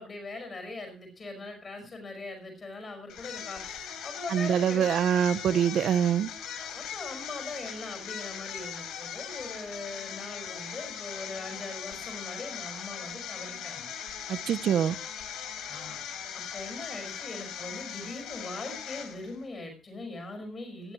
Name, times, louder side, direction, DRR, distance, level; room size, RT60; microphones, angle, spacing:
voice 1, 0.0-4.9 6.5-13.9 15.7-16.0 16.3-20.9, left 2 dB, 25° left, 5 dB, 5.3 m, -41 dB
sound 1, 3.1-19.4, left 8 dB, 80° left, 3.7 m, -40 dB
voice 2, 4.3-6.3 14.3-15.0, right 9 dB, 55° right, 16 dB, 0.7 m, -25 dB
18.0 x 12.5 x 3.1 m, 0.34 s
cardioid pair, 170°, 0 cm